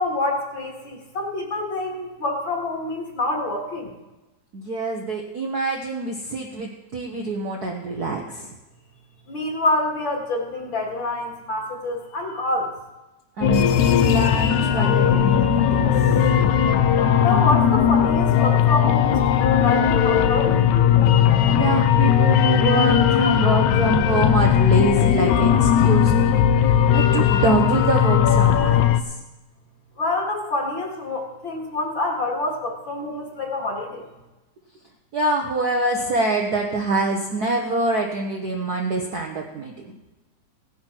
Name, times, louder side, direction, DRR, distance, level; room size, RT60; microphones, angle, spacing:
voice 1, 0.0-3.9 9.3-12.7 17.2-20.6 30.0-34.0, left 2 dB, 45° left, 1 dB, 2.6 m, -26 dB
voice 2, 4.5-8.5 13.4-16.1 21.5-29.0 35.1-40.0, right 2 dB, 80° right, 0 dB, 0.8 m, -25 dB
sound 1, 13.4-29.0, left 9 dB, 80° left, 2.0 m, -18 dB
17.0 x 10.5 x 4.5 m, 1.0 s
omnidirectional pair, 3.4 m